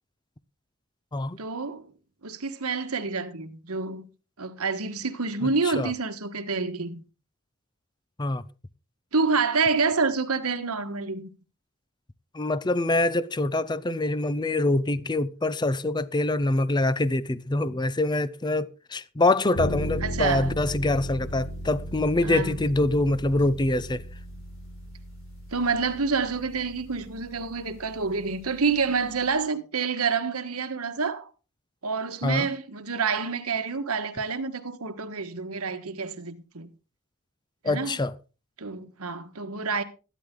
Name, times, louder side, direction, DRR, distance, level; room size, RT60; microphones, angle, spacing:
voice 1, 1.4-1.8 2.2-4.1 4.4-7.0 9.1-11.3 17.7-17.8 20.0-20.5 22.2-22.6 25.5-31.3 31.8-36.7 37.6-38.0 38.6-39.8, right 4 dB, 85° right, 1.4 m, -28 dB
voice 2, 5.4-5.9 8.2-8.4 12.3-24.0 32.2-32.5 37.6-38.1, left 2 dB, 20° left, 0.6 m, -25 dB
sound 1, 19.6-29.3, equal, 60° left, 5.4 m, -37 dB
14.0 x 11.5 x 3.8 m
head